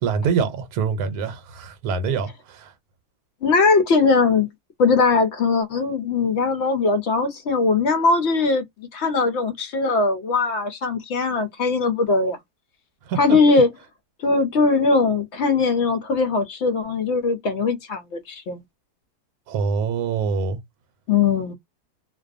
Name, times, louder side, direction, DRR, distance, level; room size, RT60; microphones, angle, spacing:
voice 1, 0.0-2.7 13.0-13.4 19.5-20.6, right 5 dB, 80° right, 1.1 m, -25 dB
voice 2, 3.4-4.5 4.8-12.4 13.2-13.7 14.2-18.6 21.1-21.5, left 4 dB, 65° left, 0.7 m, -20 dB
2.4 x 2.2 x 2.4 m
omnidirectional pair, 1.6 m